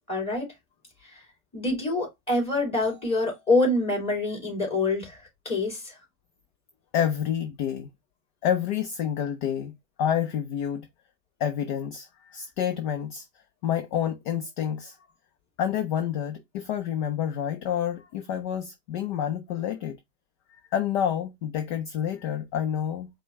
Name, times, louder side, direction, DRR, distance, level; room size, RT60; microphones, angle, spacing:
voice 1, 0.1-0.5 1.1-1.2 1.5-5.9, left 2 dB, 15° left, 2.9 m, -26 dB
voice 2, 6.9-7.9 8.4-10.9 11.4-13.3 13.6-15.0 15.6-20.0 20.5-23.1, left 9 dB, 35° left, 0.5 m, -28 dB
5.0 x 2.2 x 3.4 m
hypercardioid pair, 135°, 45 cm